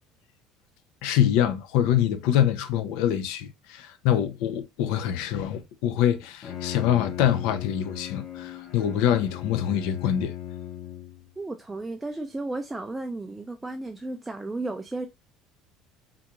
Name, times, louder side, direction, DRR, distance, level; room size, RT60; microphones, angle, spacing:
voice 1, 1.0-10.3, left 10 dB, 75° left, 0.4 m, -25 dB
Bowed string instrument, 6.2-11.3, left 11 dB, 40° left, 0.7 m, -37 dB
voice 2, 11.4-15.1, right 2 dB, 10° right, 0.3 m, -34 dB
3.6 x 2.3 x 2.9 m
cardioid pair, 155°, 0 cm